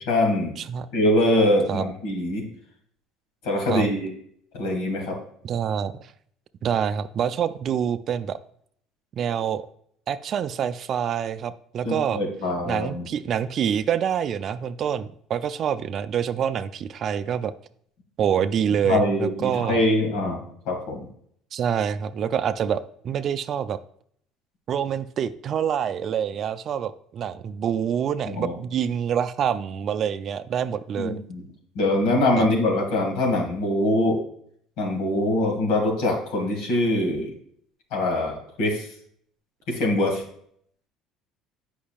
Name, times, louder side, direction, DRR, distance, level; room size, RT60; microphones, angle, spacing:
voice 1, 0.1-0.5 0.9-2.4 3.4-4.1 4.5-5.2 11.8-13.0 18.8-21.0 28.3-28.5 31.0-31.5 31.8-34.2 34.8-37.3 37.9-38.9 39.7-40.2, left 1 dB, 80° left, 1 dB, 2.2 m, -23 dB
voice 2, 5.4-5.9 6.6-8.4 9.1-9.7 10.1-12.2 12.6-17.5 18.2-19.8 21.5-23.8 24.7-31.2 32.4-32.5, right 8 dB, 45° right, 12 dB, 0.4 m, -26 dB
8.5 x 5.5 x 2.4 m, 0.65 s
supercardioid pair, 110°, 0 cm